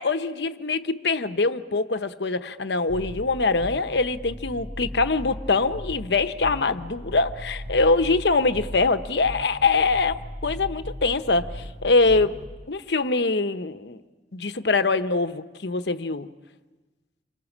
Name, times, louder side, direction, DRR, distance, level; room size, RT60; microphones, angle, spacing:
voice 1, 0.0-10.2 10.4-12.3 12.7-14.0 14.3-16.3, left 3 dB, 75° left, 10 dB, 0.9 m, -23 dB
sound 1, 2.9-12.6, equal, 60° right, 2.4 m, -38 dB
27.0 x 25.0 x 7.3 m, 1.3 s
head